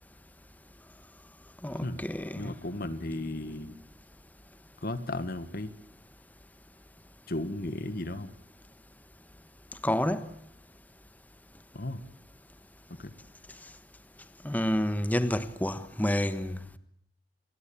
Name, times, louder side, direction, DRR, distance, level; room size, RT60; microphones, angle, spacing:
voice 1, 1.6-2.5 9.8-10.3 14.4-16.6, left 1 dB, 10° left, 1.3 m, -29 dB
voice 2, 2.3-3.8 4.8-5.7 7.3-8.3 11.7-12.0 13.0-13.1, left 1 dB, 55° left, 1.7 m, -35 dB
28.5 x 22.0 x 8.8 m
head